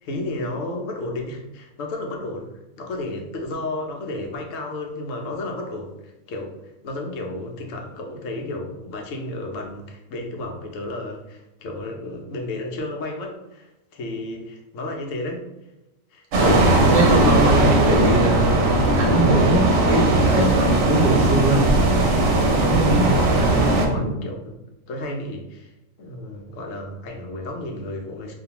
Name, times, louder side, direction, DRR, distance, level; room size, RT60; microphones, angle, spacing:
voice 1, 0.0-15.5 16.1-16.2 22.5-22.9 23.7-24.6 24.9-25.7 26.0-28.3, left 1 dB, 70° left, 1 dB, 0.9 m, -32 dB
sound 1, 16.3-23.9, right 2 dB, 70° right, 0.9 m, -18 dB
voice 2, 16.4-16.7 16.9-18.4 19.0-20.0 20.3-21.7 22.5-23.2 23.9-24.2, right 1 dB, 45° right, -2 dB, 0.6 m, -22 dB
2.5 x 2.2 x 2.8 m, 0.92 s
omnidirectional pair, 1.5 m